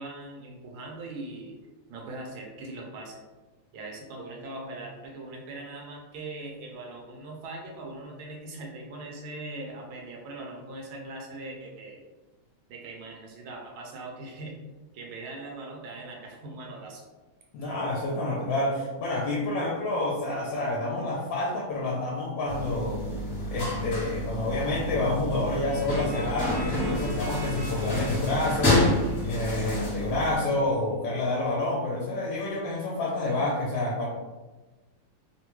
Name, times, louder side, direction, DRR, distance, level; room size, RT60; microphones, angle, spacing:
voice 1, 0.0-1.5 1.9-3.2 3.7-12.0 12.7-14.6 14.9-17.0, right 2 dB, 85° right, -1 dB, 1.5 m, -40 dB
voice 2, 17.5-23.0 23.5-34.1, left 2 dB, 75° left, -4 dB, 1.2 m, -28 dB
sound 1, 22.5-30.3, left 1 dB, 40° left, 1.0 m, -29 dB
sound 2, 25.6-30.2, equal, 90° left, 0.5 m, -44 dB
3.7 x 2.2 x 2.9 m, 1.2 s
omnidirectional pair, 2.3 m